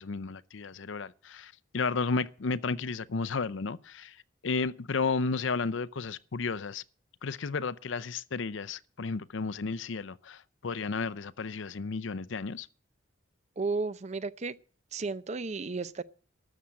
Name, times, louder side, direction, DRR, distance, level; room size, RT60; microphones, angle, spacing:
voice 1, 0.0-6.8 7.2-12.7, left 4 dB, 70° left, 0.6 m, -33 dB
voice 2, 13.6-14.6 14.9-16.0, right 3 dB, 35° right, 0.5 m, -33 dB
13.0 x 7.6 x 8.6 m
head